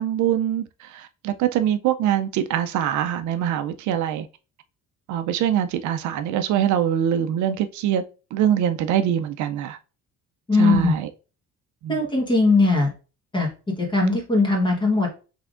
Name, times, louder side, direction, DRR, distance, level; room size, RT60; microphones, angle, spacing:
voice 1, 0.0-4.3 5.1-8.0 8.3-9.8 10.6-11.1 11.8-12.0, right 10 dB, 70° right, 0.4 m, -23 dB
voice 2, 10.5-10.9 11.9-12.9 13.3-13.5 13.8-15.1, left 3 dB, 15° left, 1.2 m, -19 dB
5.6 x 3.5 x 2.4 m
cardioid pair, 180°, 31 cm